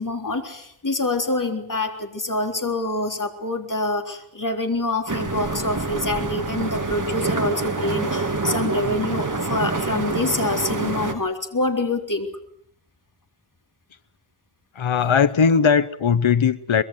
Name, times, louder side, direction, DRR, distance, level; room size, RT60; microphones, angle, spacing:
voice 1, 0.0-12.3, left 2 dB, 40° left, 4 dB, 3.9 m, -26 dB
sound 1, 5.1-11.1, right 3 dB, 40° right, 2.9 m, -26 dB
voice 2, 14.7-16.8, left 6 dB, 70° left, 12 dB, 1.0 m, -19 dB
24.0 x 22.0 x 7.9 m, 0.69 s
wide cardioid pair, 75°, 49 cm